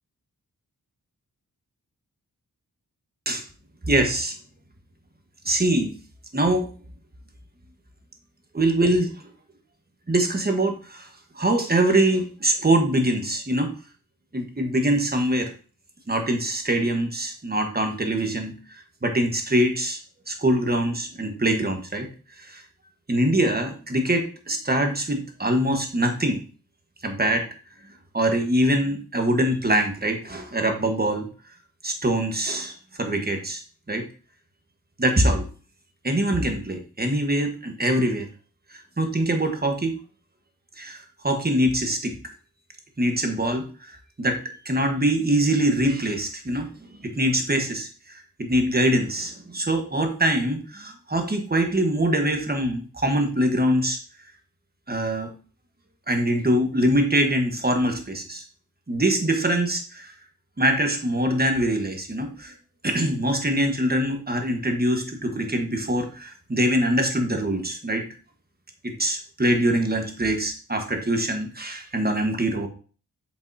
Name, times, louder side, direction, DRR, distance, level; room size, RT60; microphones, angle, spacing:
voice 1, 3.9-4.3 5.4-5.9 6.3-6.7 8.5-9.1 10.1-11.1 11.3-13.7 14.3-15.5 16.1-18.5 19.0-20.0 20.3-22.1 22.4-22.6 23.1-26.4 27.0-27.5 28.1-31.3 31.8-32.7 33.0-33.6 33.9-34.0 35.0-35.5 36.0-38.3 38.7-40.0 40.8-42.2 43.0-43.7 44.2-46.7 47.0-54.0 54.9-55.3 56.1-58.4 58.9-60.1 60.6-62.5 62.8-68.0 68.8-72.7, right 1 dB, 25° right, 4 dB, 1.3 m, -23 dB
7.9 x 5.3 x 2.7 m, 0.38 s
wide cardioid pair, 75°, 36 cm